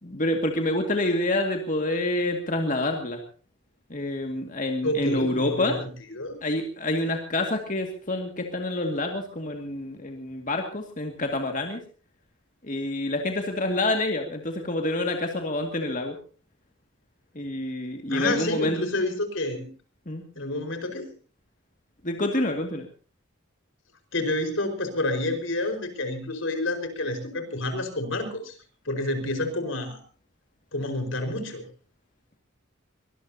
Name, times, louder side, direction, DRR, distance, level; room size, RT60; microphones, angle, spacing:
voice 1, 0.0-3.2 3.9-5.8 6.4-11.8 12.6-16.2 17.4-18.8 20.1-20.2 22.0-22.9, left 1 dB, 40° left, 3 dB, 2.1 m, -27 dB
voice 2, 4.8-6.5 18.1-19.7 20.3-21.1 24.1-28.5 28.8-30.0 30.7-31.6, left 1 dB, 75° left, 6 dB, 4.9 m, -29 dB
23.5 x 20.5 x 2.8 m, 0.39 s
head